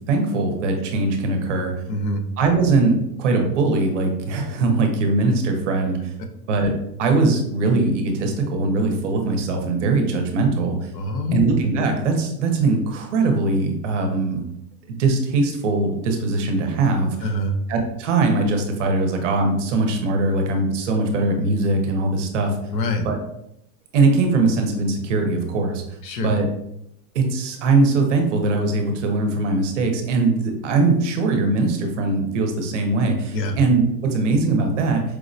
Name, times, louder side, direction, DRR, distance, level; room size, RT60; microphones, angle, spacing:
voice 1, 0.1-1.7 2.4-6.1 6.5-6.7 7.0-10.9 11.3-14.4 14.9-17.3 17.7-22.6 23.0-23.2 23.9-25.8 26.2-26.5 27.1-35.0, right 3 dB, 50° right, 3 dB, 0.6 m, -21 dB
voice 2, 1.9-2.2 10.9-11.4 17.2-17.6 22.7-23.1 26.0-26.3 33.3-33.6, left 1 dB, 90° left, 5 dB, 0.8 m, -24 dB
4.6 x 2.0 x 2.5 m, 0.79 s
supercardioid pair, 175°, 48 cm